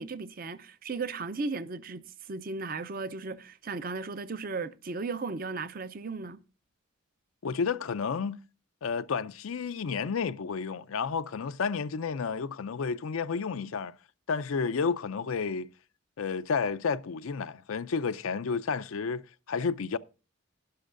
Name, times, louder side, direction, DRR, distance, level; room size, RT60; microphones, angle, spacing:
voice 1, 0.0-6.4, right 4 dB, 40° right, 0.5 m, -36 dB
voice 2, 7.4-8.4 8.8-13.9 14.3-15.7 16.2-20.0, left 5 dB, 75° left, 0.5 m, -31 dB
11.5 x 11.0 x 2.5 m
head